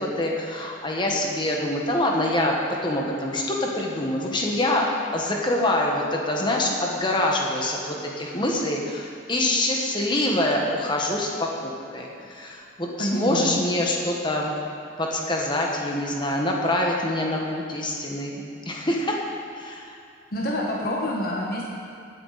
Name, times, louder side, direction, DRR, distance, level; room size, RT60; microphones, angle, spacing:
voice 1, 0.0-2.6 2.8-14.5 15.0-19.2 19.5-19.9, left 1 dB, 25° left, -1 dB, 1.4 m, -25 dB
voice 2, 13.0-13.6 20.3-21.6, equal, 45° left, -3 dB, 1.3 m, -27 dB
18.5 x 9.0 x 4.2 m, 2.4 s
head